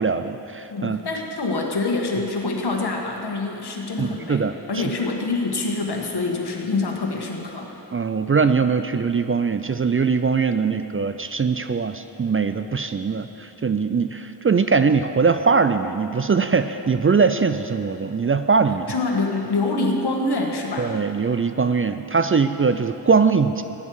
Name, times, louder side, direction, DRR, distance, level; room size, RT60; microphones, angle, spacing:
voice 1, 0.0-1.0 4.0-4.9 7.9-18.9 20.8-23.6, right 5 dB, 35° right, 10 dB, 0.4 m, -21 dB
voice 2, 0.7-7.7 18.9-20.9, left 3 dB, 70° left, 1 dB, 1.6 m, -25 dB
13.5 x 9.6 x 4.8 m, 3.0 s
cardioid pair, 50°, 42 cm